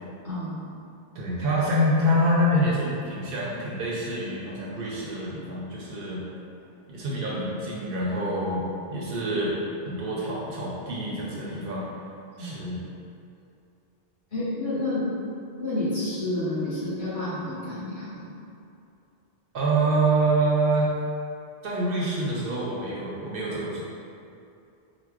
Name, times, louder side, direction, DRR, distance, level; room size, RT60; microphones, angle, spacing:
voice 1, 0.2-0.6 12.4-12.5 14.3-15.0 15.6-18.2, left 1 dB, 50° left, -13 dB, 1.7 m, -29 dB
voice 2, 1.1-6.2 6.9-8.6 8.9-9.6 9.9-11.9 12.4-12.8 19.5-20.9 21.6-23.8, right 1 dB, 65° right, -5 dB, 0.7 m, -26 dB
4.4 x 2.1 x 2.3 m, 2.6 s
omnidirectional pair, 1.1 m